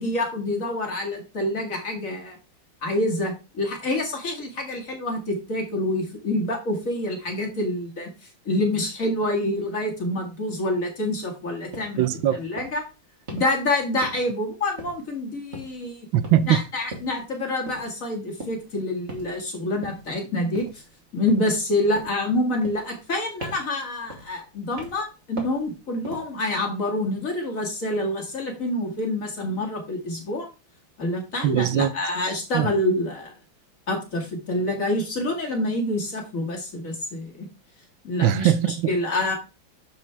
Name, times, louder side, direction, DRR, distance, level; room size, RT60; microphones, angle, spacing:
voice 1, 0.0-2.4 2.8-8.1 8.5-12.0 12.4-12.8 13.3-16.1 16.5-20.8 21.1-30.5 31.0-33.3 33.9-37.5 38.0-38.5 38.9-39.3, left 1 dB, 45° left, 2.3 m, -27 dB
sound 1, 11.7-12.0 12.6-12.8 13.3-13.6 14.0-14.4 14.8-15.2 15.5-15.9 16.2-16.5 16.9-17.2 17.7-17.9 18.4-18.7 19.1-19.4 19.8-20.1 20.5-20.9 21.3-21.7 22.0-22.3 22.6-23.1 23.4-23.8 24.1-24.4 24.8-25.1 25.4-25.7 26.0-26.4, right 2 dB, 35° right, 2.4 m, -39 dB
voice 2, 12.0-12.4 16.1-16.6 31.4-31.9 32.5-32.7 38.2-38.9, right 11 dB, 90° right, 1.5 m, -21 dB
11.5 x 4.8 x 3.4 m
omnidirectional pair, 2.1 m